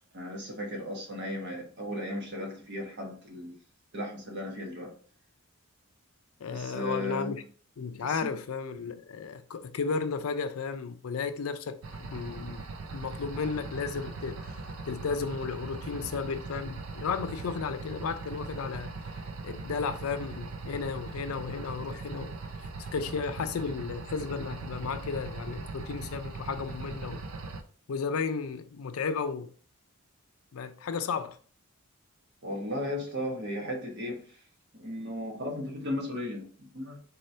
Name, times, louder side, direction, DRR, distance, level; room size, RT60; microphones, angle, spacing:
voice 1, 0.1-3.6 3.9-4.9 6.5-7.4 8.0-8.3 32.4-34.2 34.7-37.0, left 1 dB, 55° right, 1.1 m, -35 dB
voice 2, 6.4-7.4 7.8-12.6 12.9-14.5 14.9-18.9 19.4-22.3 22.9-27.2 27.9-29.5 30.5-31.4, left 5 dB, 75° left, 0.4 m, -34 dB
sound 1, 11.8-27.6, right 3 dB, 75° right, 0.5 m, -40 dB
4.1 x 2.7 x 3.2 m
head